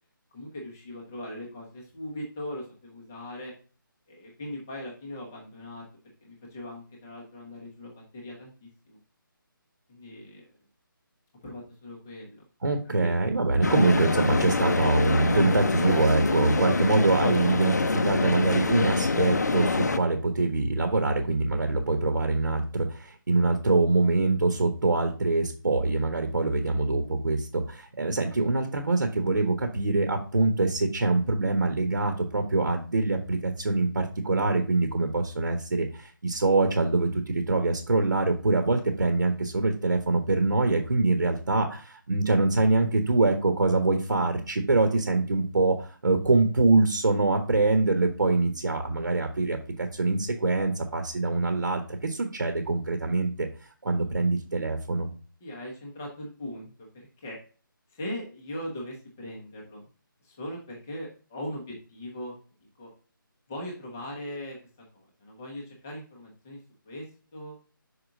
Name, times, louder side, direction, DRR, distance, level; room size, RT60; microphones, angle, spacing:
voice 1, 0.3-3.5 4.1-5.8 6.2-9.0 9.9-10.4 11.4-12.4 12.8-13.1 55.4-56.9 57.2-57.4 57.9-59.9 60.2-62.3 62.8-62.9 63.5-64.6 64.9-66.6 66.8-67.0 67.3-67.6, left 1 dB, 5° left, -1 dB, 0.6 m, -39 dB
voice 2, 12.6-53.5 53.8-55.1, right 3 dB, 65° right, 5 dB, 1.2 m, -24 dB
sound 1, 13.6-20.0, left 3 dB, 50° left, 0.6 m, -25 dB
5.9 x 5.0 x 3.7 m, 0.38 s
hypercardioid pair, 180°, 12 cm